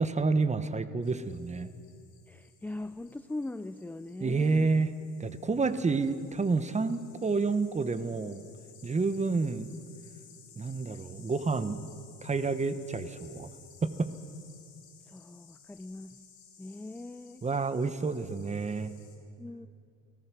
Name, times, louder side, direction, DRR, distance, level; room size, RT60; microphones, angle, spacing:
voice 1, 0.0-1.7 4.2-4.9 5.2-8.4 8.8-9.7 10.6-11.8 12.2-13.5 13.8-14.1 17.4-18.9, right 4 dB, 20° right, 12 dB, 1.1 m, -29 dB
sound 1, 1.0-19.2, left 7 dB, 55° left, 6.6 m, -57 dB
voice 2, 2.3-4.7 15.1-16.2 16.6-17.4 19.4-19.7, left 2 dB, 5° left, 11 dB, 0.5 m, -41 dB
29.5 x 17.5 x 6.2 m, 2.3 s
cardioid pair, 115°, 35 cm